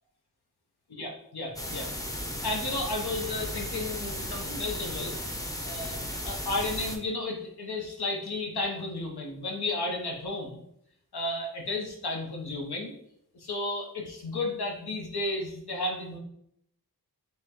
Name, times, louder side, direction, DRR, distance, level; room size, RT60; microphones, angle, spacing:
voice 1, 1.0-1.9 2.4-5.1 5.6-6.0 6.2-10.6 11.1-12.9 13.3-16.2, left 2 dB, 75° left, 0 dB, 0.8 m, -33 dB
sound 1, 1.6-7.0, equal, 10° left, 0.5 m, -35 dB
5.5 x 2.1 x 2.9 m, 0.72 s
wide cardioid pair, 45°, 38 cm